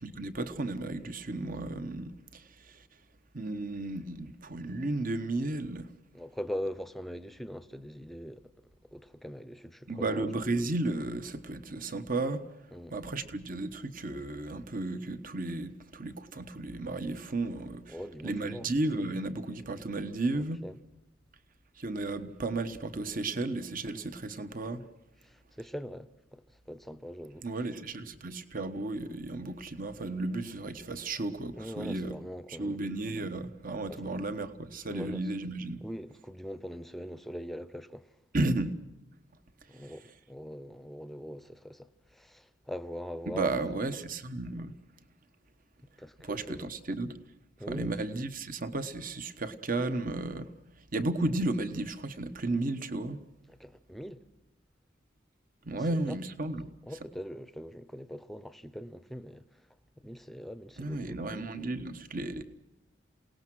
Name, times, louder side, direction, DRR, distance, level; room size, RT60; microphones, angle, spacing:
voice 1, 0.0-2.9 3.3-5.9 9.9-12.4 12.9-18.0 18.2-20.6 21.8-24.8 27.4-32.1 32.5-35.8 38.3-38.8 43.3-44.8 46.2-47.2 47.7-50.5 50.9-53.2 55.6-56.7 60.8-62.4, right 2 dB, 50° right, 1.2 m, -34 dB
voice 2, 6.1-8.5 8.9-10.3 12.7-13.0 17.9-18.7 20.3-20.8 25.2-27.5 31.6-32.8 33.9-34.3 34.9-35.2 35.8-38.2 39.7-43.5 46.0-46.7 47.6-48.0 53.5-54.2 55.8-56.1 56.9-59.6 60.0-61.2, equal, ahead, 0.8 m, -42 dB
28.0 x 18.5 x 6.3 m
head